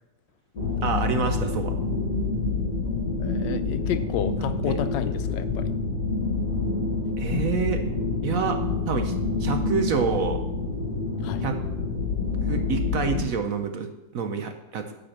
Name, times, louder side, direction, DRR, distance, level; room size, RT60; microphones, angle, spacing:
sound 1, 0.6-13.2, left 4 dB, 50° left, 2.0 m, -27 dB
voice 1, 0.8-1.7 4.6-4.8 7.2-7.8 8.2-8.6 8.9-9.1 9.4-10.4 11.4-11.6 12.5-14.9, right 6 dB, 60° right, 6 dB, 1.0 m, -27 dB
voice 2, 3.2-5.7 11.2-11.5, left 9 dB, 80° left, 12 dB, 1.3 m, -31 dB
11.0 x 5.2 x 7.4 m, 0.99 s
omnidirectional pair, 2.0 m